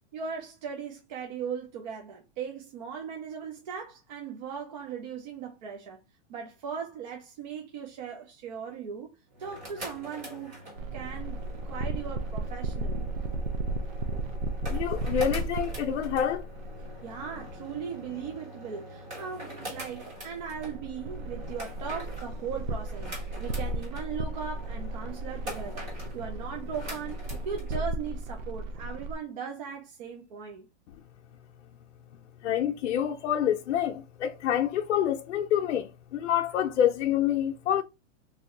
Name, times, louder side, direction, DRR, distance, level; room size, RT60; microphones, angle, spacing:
voice 1, 0.1-6.0 6.3-9.1 9.4-10.6 10.9-11.4 11.7-13.1 17.0-30.7, right 6 dB, 35° right, 0.5 m, -38 dB
sound 1, 9.3-27.8, right 1 dB, 20° right, 1.2 m, -44 dB
sound 2, 10.8-17.5 19.8-29.1, right 2 dB, 90° right, 0.8 m, -35 dB
voice 2, 14.7-16.5 32.4-37.8, left 10 dB, 70° left, 0.6 m, -27 dB
3.1 x 2.6 x 3.7 m
hypercardioid pair, 155°, 38 cm